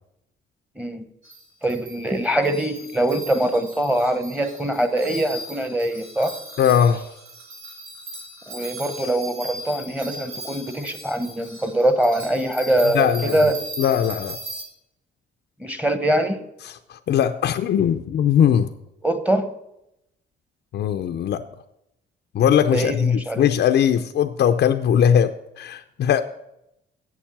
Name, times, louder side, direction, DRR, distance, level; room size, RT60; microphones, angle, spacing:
sound 1, 1.2-14.6, right 1 dB, 90° right, 2.5 m, -38 dB
voice 1, 1.6-6.4 8.5-13.6 15.6-16.4 19.0-19.5 22.7-23.4, right 1 dB, 5° right, 9 dB, 1.1 m, -23 dB
voice 2, 6.6-7.1 12.9-13.4 13.8-14.4 16.6-18.7 20.7-21.4 22.3-26.2, left 9 dB, 60° left, 8 dB, 0.6 m, -20 dB
8.3 x 7.2 x 7.2 m, 0.84 s
cardioid pair, 90°, 20 cm